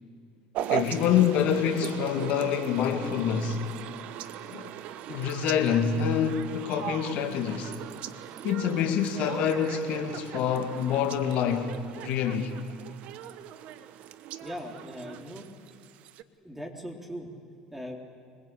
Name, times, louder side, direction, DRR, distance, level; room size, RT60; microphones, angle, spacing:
sound 1, 0.5-16.2, right 11 dB, 60° right, 1.0 m, -38 dB
voice 1, 0.7-3.6 4.5-4.7 5.1-7.7 8.4-12.5, left 8 dB, 60° left, 2.1 m, -26 dB
voice 2, 14.4-15.5 16.4-17.3 17.7-18.0, equal, 5° right, 3.8 m, -39 dB
25.0 x 20.5 x 8.5 m
hypercardioid pair, 70°, 3 cm